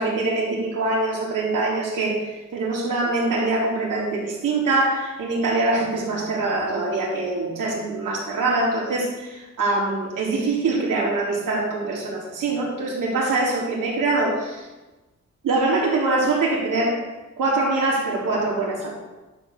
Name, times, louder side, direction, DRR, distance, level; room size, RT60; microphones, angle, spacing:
voice 1, 0.0-14.7 15.4-17.0 17.4-18.9, right 2 dB, 85° right, -4 dB, 3.6 m, -23 dB
11.0 x 5.3 x 6.7 m, 1.1 s
wide cardioid pair, 165°, 31 cm